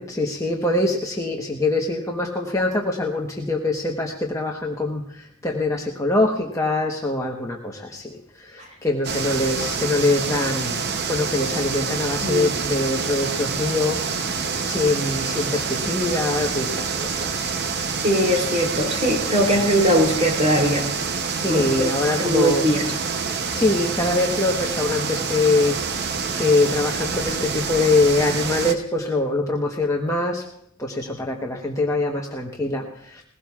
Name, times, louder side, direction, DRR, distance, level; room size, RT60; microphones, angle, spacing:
voice 1, 0.0-17.5 21.3-22.7 23.5-30.4 30.8-33.2, left 2 dB, 15° left, -1 dB, 1.0 m, -24 dB
sound 1, 9.0-28.7, right 5 dB, 50° right, 0.7 m, -27 dB
voice 2, 18.0-20.8 21.5-21.9 22.2-22.8, equal, 30° right, 1 dB, 3.1 m, -20 dB
20.5 x 16.5 x 2.4 m, 0.70 s
head